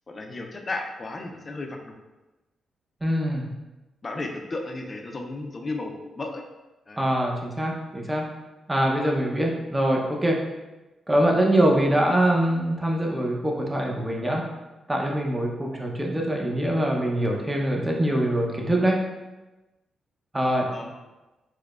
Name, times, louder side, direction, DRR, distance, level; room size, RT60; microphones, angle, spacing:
voice 1, 0.1-1.9 4.0-6.4 6.9-7.0 20.7-20.9, left 2 dB, 40° left, 3 dB, 0.5 m, -34 dB
voice 2, 3.0-3.5 7.0-8.2 8.7-10.4 11.1-14.4 14.9-19.0 20.3-20.7, right 1 dB, 15° right, -1 dB, 0.7 m, -23 dB
4.6 x 2.1 x 2.4 m, 1.1 s
cardioid pair, 60°, 0 cm